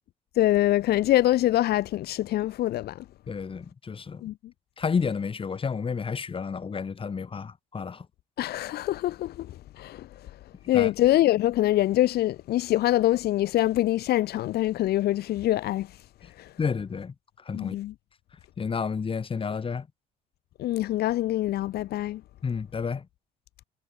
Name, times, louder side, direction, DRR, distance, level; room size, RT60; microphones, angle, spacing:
voice 1, 0.3-3.1 4.2-4.3 8.4-10.3 10.7-16.1 16.4-16.5 17.5-17.9 20.6-22.2, left 14 dB, 70° left, 1.9 m, -24 dB
voice 2, 3.3-4.2 4.8-8.1 10.7-10.9 16.6-17.8 18.6-19.9 22.4-23.1, left 5 dB, 30° left, 6.9 m, -31 dB
cardioid pair, 110°, 17 cm